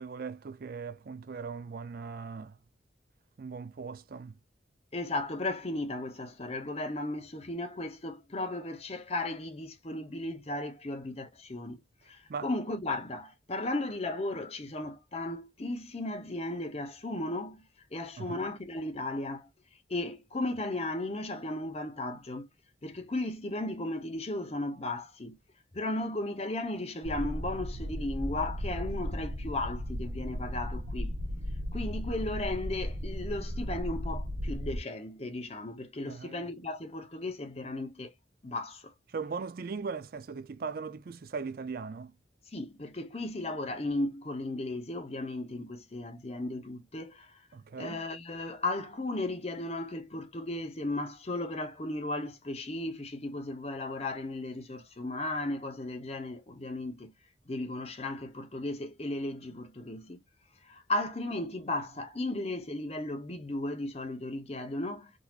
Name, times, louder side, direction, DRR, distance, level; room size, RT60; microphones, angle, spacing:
voice 1, 0.0-2.6 3.4-4.3 12.3-12.5 18.2-18.4 36.1-36.4 39.1-42.1 47.5-48.0, right 5 dB, 50° right, 0.4 m, -39 dB
voice 2, 4.9-11.8 12.1-17.6 17.9-19.5 19.9-22.5 22.8-25.4 25.7-31.1 31.7-38.1 38.4-38.9 42.5-47.4 47.8-57.1 57.5-60.2 60.6-65.1, left 2 dB, 35° left, 0.8 m, -35 dB
sound 1, 27.0-34.8, equal, 70° right, 1.0 m, -35 dB
3.9 x 2.9 x 2.4 m
head